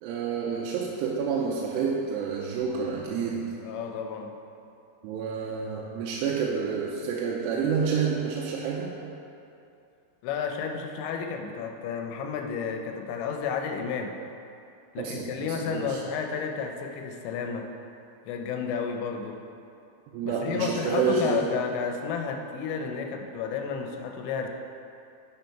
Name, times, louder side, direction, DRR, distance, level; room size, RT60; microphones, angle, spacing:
voice 1, 0.0-3.5 5.0-9.1 15.0-16.0 20.1-21.4, right 6 dB, 80° right, -3 dB, 2.6 m, -29 dB
voice 2, 3.6-4.3 10.2-14.2 14.9-17.7 18.3-19.4 20.2-24.5, left 6 dB, 90° left, 4 dB, 3.0 m, -31 dB
11.0 x 5.0 x 4.5 m, 2.6 s
omnidirectional pair, 5.1 m